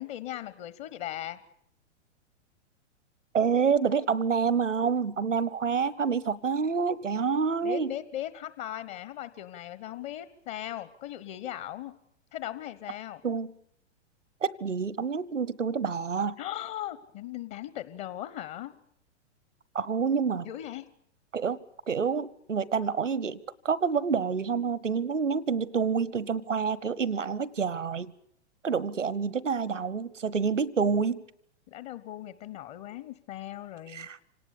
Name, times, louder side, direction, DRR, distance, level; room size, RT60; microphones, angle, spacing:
voice 1, 0.0-1.4 7.6-11.9 12.3-13.2 16.4-18.7 20.4-20.9 31.7-34.1, left 13 dB, 40° left, 15 dB, 1.3 m, -38 dB
voice 2, 3.3-7.9 13.2-13.5 14.4-16.4 19.7-20.5 21.3-21.6 21.9-28.1 28.6-31.2 33.9-34.2, right 6 dB, 85° right, 21 dB, 1.0 m, -28 dB
26.5 x 18.5 x 8.4 m, 0.71 s
figure-of-eight pair, 105°, 36 cm